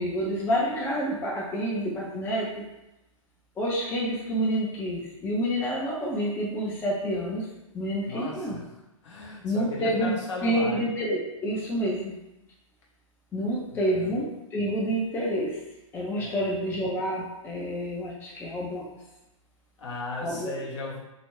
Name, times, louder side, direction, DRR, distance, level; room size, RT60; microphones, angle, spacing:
voice 1, 0.0-2.7 3.6-7.5 7.7-8.6 9.4-10.1 10.4-12.2 13.3-15.6 15.9-18.9 20.2-20.6, equal, 10° left, -4 dB, 0.4 m, -28 dB
voice 2, 8.1-8.6 9.0-10.9 13.7-14.1 16.2-16.5 19.8-21.0, left 3 dB, 60° left, -4 dB, 0.9 m, -36 dB
2.4 x 2.1 x 3.0 m, 0.94 s
figure-of-eight pair, 110°, 17 cm